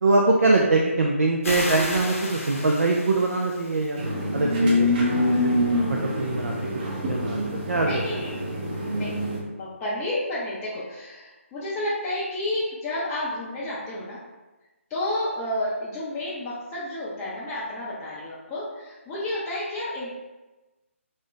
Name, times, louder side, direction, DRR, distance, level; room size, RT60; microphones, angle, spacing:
voice 1, 0.0-4.0 4.3-5.6 5.9-6.5 7.1-7.4 7.7-8.0, right 2 dB, 75° right, 0 dB, 0.4 m, -23 dB
sound 1, 1.4-4.0, left 1 dB, 70° left, 0.8 m, -33 dB
sound 2, 4.0-9.4, left 1 dB, 40° right, 0.6 m, -25 dB
voice 2, 7.7-9.2 9.5-14.2 14.9-20.1, left 1 dB, 15° left, -9 dB, 0.4 m, -31 dB
2.5 x 2.1 x 3.7 m, 1.1 s
figure-of-eight pair, 150°, 8 cm